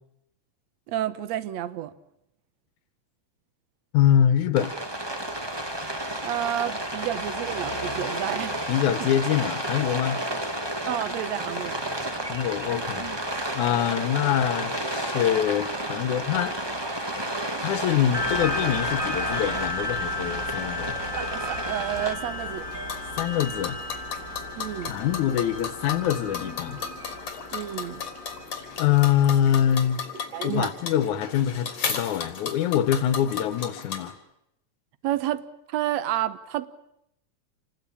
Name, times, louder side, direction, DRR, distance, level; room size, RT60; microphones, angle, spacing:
voice 1, 0.9-1.9 6.2-8.6 10.9-11.8 21.2-22.7 24.6-25.0 27.5-28.0 30.3-30.7 35.0-36.7, right 12 dB, 70° right, 2.2 m, -30 dB
voice 2, 3.9-4.7 8.7-10.2 12.3-13.1 13.5-16.6 17.6-21.0 23.2-23.8 24.9-26.8 28.8-30.0 30.4-34.1, left 10 dB, 90° left, 2.5 m, -24 dB
Rain, 4.6-22.1, right 1 dB, 15° right, 1.1 m, -31 dB
sound 1, 18.1-29.0, left 2 dB, 30° right, 2.7 m, -33 dB
sound 2, 22.2-34.1, left 6 dB, 65° left, 4.1 m, -35 dB
28.0 x 19.0 x 8.7 m
omnidirectional pair, 3.3 m